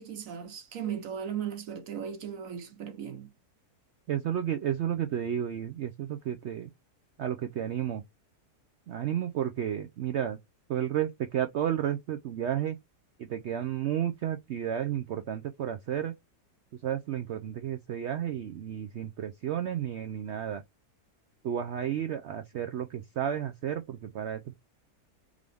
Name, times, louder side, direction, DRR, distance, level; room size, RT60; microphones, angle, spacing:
voice 1, 0.0-3.3, right 8 dB, 65° right, 1.0 m, -37 dB
voice 2, 4.1-6.7 7.2-8.0 8.9-10.4 10.7-12.8 13.2-16.1 16.8-20.6 21.4-24.5, right 10 dB, 80° right, 0.6 m, -32 dB
3.7 x 3.2 x 3.4 m
omnidirectional pair, 1.7 m